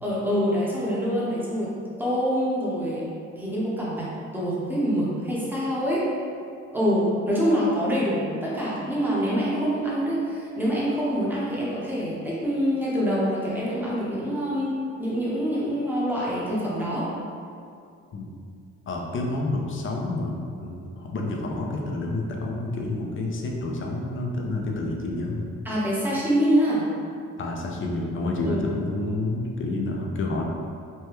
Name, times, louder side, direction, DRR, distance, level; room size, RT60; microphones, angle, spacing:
voice 1, 0.0-1.7 2.0-3.0 3.4-6.0 6.7-17.1 25.6-26.9 28.5-28.6, equal, 5° right, -8 dB, 0.9 m, -25 dB
voice 2, 18.9-25.5 27.4-30.4, left 2 dB, 45° left, 0 dB, 0.5 m, -29 dB
3.3 x 2.2 x 3.0 m, 2.4 s
cardioid pair, 90°, 30 cm